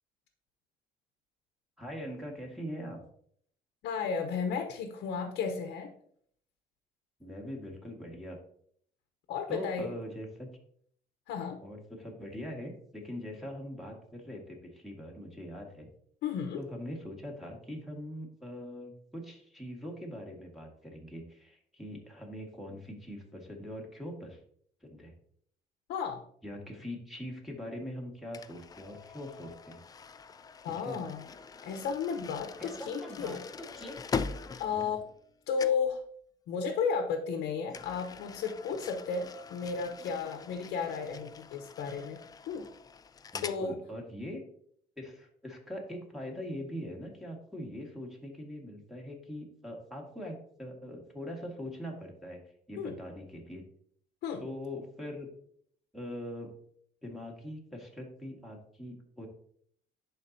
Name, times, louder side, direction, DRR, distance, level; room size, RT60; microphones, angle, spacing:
voice 1, 1.8-3.0 7.2-8.4 9.5-10.5 11.6-15.9 16.6-24.4 24.8-25.1 26.4-29.8 30.7-31.0 32.6-34.2 34.7-35.0 43.3-44.4 45.0-52.4 52.7-53.6 54.4-55.3 55.9-56.5 57.0-59.3, equal, ahead, 0 dB, 1.7 m, -42 dB
voice 2, 3.8-5.9 9.3-9.9 11.3-11.6 16.2-16.6 25.9-26.2 30.6-31.2 31.6-33.4 34.6-35.0 35.5-36.0 36.5-42.2 42.5-42.7 43.4-43.7 52.8-53.0 54.2-54.4, left 6 dB, 80° left, 5 dB, 0.9 m, -33 dB
sound 1, 28.3-35.3 35.6-35.9 37.7-43.6, left 5 dB, 20° left, 0.3 m, -42 dB
11.0 x 4.1 x 2.7 m, 0.64 s
cardioid pair, 110°, 17 cm